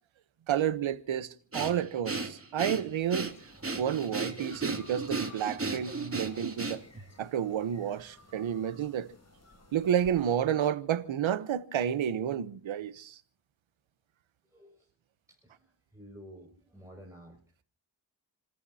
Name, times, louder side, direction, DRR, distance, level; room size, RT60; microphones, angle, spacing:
voice 1, 0.5-3.3 3.8-6.8 7.2-9.1 9.7-13.2, right 9 dB, 90° right, 1.1 m, -30 dB
Breathing, 1.5-7.0, right 3 dB, 30° right, 2.9 m, -35 dB
sound 1, 2.9-10.4, left 2 dB, 35° left, 7.7 m, -56 dB
voice 2, 14.5-14.9 15.3-17.4, equal, 5° right, 6.1 m, -52 dB
30.0 x 14.0 x 2.8 m
cardioid pair, 65°, 45 cm